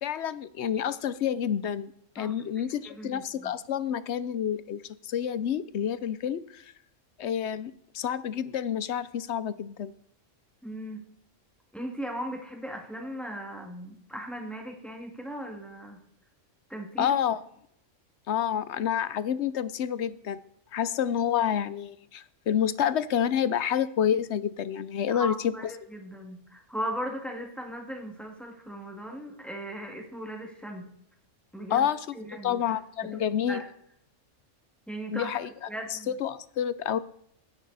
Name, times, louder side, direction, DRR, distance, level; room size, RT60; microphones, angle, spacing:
voice 1, 0.0-6.6 7.2-9.9 17.0-17.4 18.3-20.4 20.7-25.5 31.7-32.1 32.4-33.6 35.1-35.5 35.9-37.0, left 9 dB, 65° left, 16 dB, 0.9 m, -28 dB
voice 2, 2.8-3.5 10.6-11.0 11.7-16.0 16.7-17.2 25.1-30.9 31.5-31.9 32.1-33.2 33.5-33.7 34.9-35.3 35.7-36.2, equal, ahead, 2 dB, 2.2 m, -38 dB
16.0 x 11.5 x 4.1 m, 0.71 s
omnidirectional pair, 1.3 m